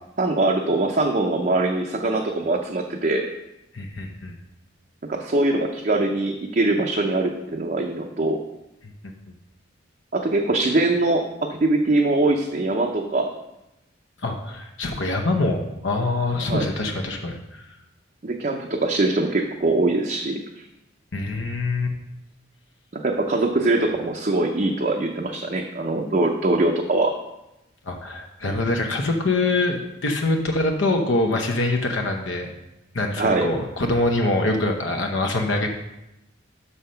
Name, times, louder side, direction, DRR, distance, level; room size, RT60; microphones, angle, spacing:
voice 1, 0.2-3.3 5.1-8.4 10.1-13.3 16.4-16.7 18.2-20.6 22.9-27.1 33.2-33.5, right 2 dB, 40° right, 1 dB, 0.6 m, -22 dB
voice 2, 3.7-4.4 14.2-17.6 21.1-21.9 27.9-32.5 32.9-35.7, left 2 dB, 75° left, 3 dB, 0.8 m, -24 dB
6.4 x 5.6 x 5.6 m, 0.90 s
head